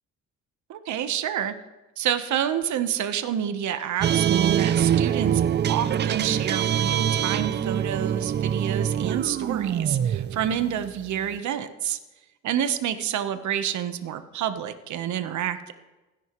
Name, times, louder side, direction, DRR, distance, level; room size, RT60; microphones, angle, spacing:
voice 1, 0.7-1.5 2.0-12.0 12.4-15.7, right 10 dB, 70° right, 10 dB, 1.0 m, -28 dB
sound 1, 4.0-11.4, right 9 dB, 35° right, 0.4 m, -24 dB
29.0 x 11.0 x 3.1 m, 1.1 s
cardioid pair, 90°, 30 cm